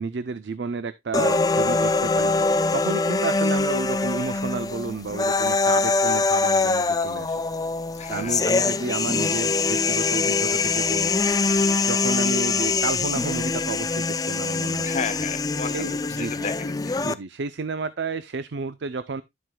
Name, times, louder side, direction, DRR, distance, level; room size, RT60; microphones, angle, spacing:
voice 1, 0.0-2.3 2.7-7.4 8.1-11.1 11.8-14.9 15.7-16.5 17.0-19.2, right 4 dB, 75° right, 0.5 m, -31 dB
sound 1, 1.1-17.1, left 3 dB, 20° left, 0.4 m, -23 dB
voice 2, 7.9-8.5 14.8-17.0, left 5 dB, 40° left, 0.8 m, -33 dB
11.5 x 7.7 x 2.2 m
head